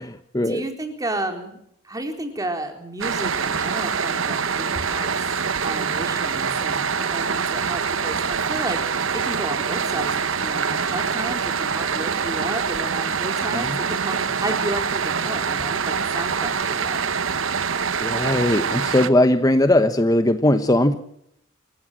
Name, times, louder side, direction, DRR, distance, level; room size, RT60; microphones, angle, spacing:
voice 1, 0.4-1.6 1.8-5.1 5.6-17.0, right 1 dB, 20° right, 5 dB, 4.0 m, -32 dB
sound 1, 3.0-19.1, right 6 dB, 80° right, 1.2 m, -25 dB
voice 2, 18.0-21.0, left 1 dB, 20° left, 9 dB, 1.1 m, -19 dB
27.5 x 15.0 x 7.6 m, 0.75 s
head